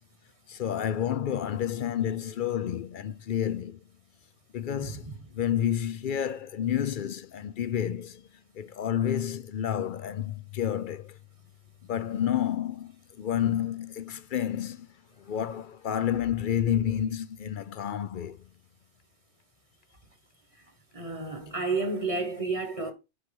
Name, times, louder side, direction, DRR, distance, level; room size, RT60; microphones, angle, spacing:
voice 1, 0.5-3.8 4.5-5.0 5.3-8.2 8.6-11.1 11.9-12.9 13.2-14.9 15.3-18.4, left 10 dB, 55° left, 0.6 m, -30 dB
voice 2, 4.8-5.1 20.9-22.9, right 3 dB, 30° right, 1.5 m, -31 dB
6.6 x 4.4 x 5.3 m
omnidirectional pair, 1.2 m